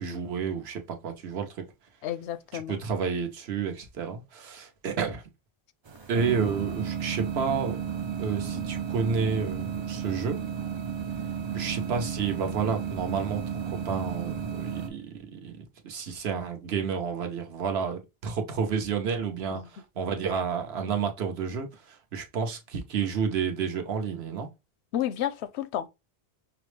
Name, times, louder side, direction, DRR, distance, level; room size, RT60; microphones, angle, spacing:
voice 1, 0.0-1.6 2.5-5.2 6.1-7.8 8.2-10.4 11.5-24.5, right 6 dB, 70° right, 1.0 m, -30 dB
voice 2, 2.0-2.8 8.5-8.6 19.5-19.7 24.9-25.9, left 11 dB, 85° left, 0.8 m, -31 dB
sound 1, 5.9-14.9, right 7 dB, 50° right, 0.3 m, -33 dB
5.8 x 2.0 x 3.2 m
omnidirectional pair, 1.1 m